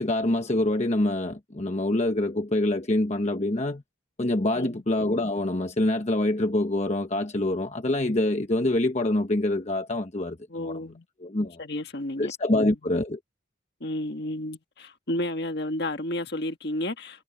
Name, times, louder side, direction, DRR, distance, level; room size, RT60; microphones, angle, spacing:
voice 1, 0.0-3.8 4.2-10.8 11.2-11.6 12.2-13.2, left 1 dB, 35° left, 1.0 m, -25 dB
voice 2, 10.5-11.0 11.6-12.6 13.8-17.2, left 1 dB, 55° left, 1.7 m, -32 dB
head